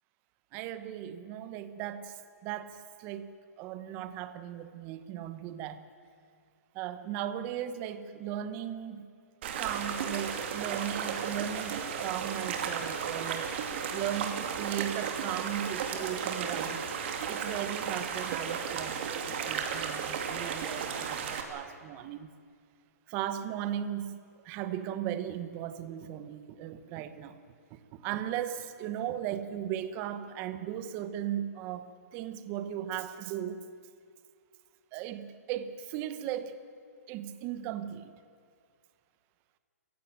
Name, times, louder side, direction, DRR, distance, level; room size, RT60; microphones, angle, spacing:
voice 1, 0.5-5.8 6.7-9.1 9.5-13.5 13.9-16.9 17.3-22.3 23.1-27.4 27.7-33.6 34.9-36.5 37.1-38.1, right 10 dB, 25° right, 11 dB, 1.0 m, -37 dB
sound 1, 9.4-21.4, right 7 dB, 40° right, 2.5 m, -34 dB
27.0 x 16.0 x 9.0 m, 2.2 s
hypercardioid pair, 160°, 9 cm